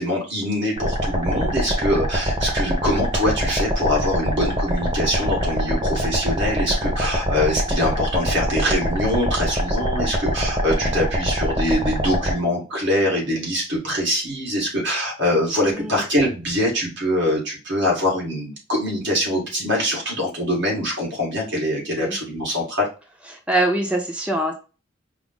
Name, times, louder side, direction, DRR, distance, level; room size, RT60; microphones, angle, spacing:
voice 1, 0.0-22.9, equal, 70° right, -1 dB, 1.7 m, -23 dB
sound 1, 0.8-12.3, equal, 25° right, 0.9 m, -24 dB
voice 2, 15.7-16.0 22.0-22.2 23.3-24.5, right 1 dB, 5° right, 2 dB, 0.5 m, -23 dB
4.8 x 2.0 x 3.7 m, 0.33 s
head